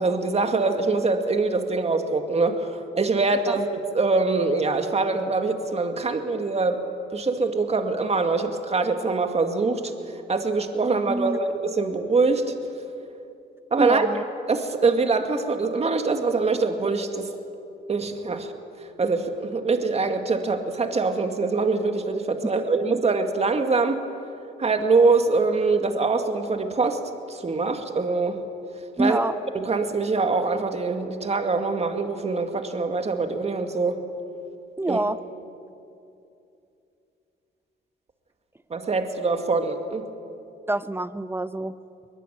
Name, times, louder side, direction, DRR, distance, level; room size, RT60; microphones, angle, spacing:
voice 1, 0.0-6.8 7.1-12.5 13.7-14.1 14.5-17.3 17.9-18.5 18.8-24.0 24.6-27.0 27.3-28.4 29.0-29.3 29.5-34.0 34.9-35.0 38.7-40.1, right 3 dB, 30° right, 6 dB, 2.2 m, -24 dB
voice 2, 13.8-14.2 29.0-29.3 34.8-35.2 40.7-41.8, right 1 dB, 10° right, 14 dB, 0.8 m, -26 dB
22.0 x 21.0 x 8.9 m, 2.7 s
cardioid pair, 90°, 20 cm